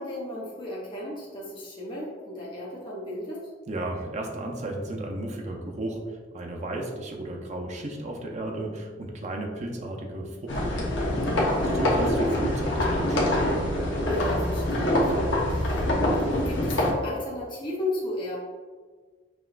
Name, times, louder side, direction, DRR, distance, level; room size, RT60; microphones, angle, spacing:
voice 1, 0.0-3.4 11.5-11.8 14.1-18.4, left 1 dB, 25° left, -6 dB, 0.7 m, -34 dB
voice 2, 3.7-11.3 11.7-13.4, right 1 dB, 40° right, 1 dB, 0.5 m, -34 dB
sound 1, 10.5-16.9, left 1 dB, 85° left, 0.8 m, -25 dB
5.8 x 2.3 x 2.4 m, 1.5 s
head